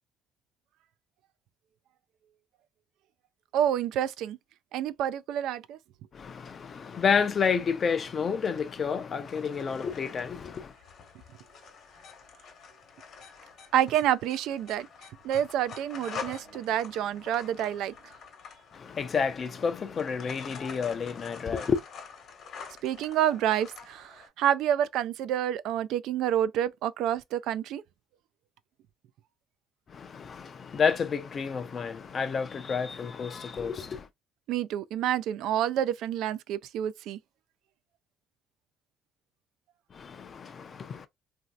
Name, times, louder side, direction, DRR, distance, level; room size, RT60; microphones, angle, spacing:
voice 1, 3.5-4.4 4.7-5.8 13.7-14.9 15.2-17.9 22.8-27.8 34.5-37.2, right 10 dB, 75° right, 0.3 m, -28 dB
voice 2, 6.1-10.7 18.8-21.8 29.9-34.0 40.0-41.1, left 6 dB, 35° left, 0.5 m, -30 dB
sound 1, 9.2-24.3, left 6 dB, 55° left, 1.0 m, -46 dB
3.1 x 2.6 x 2.3 m
cardioid pair, 130°, 0 cm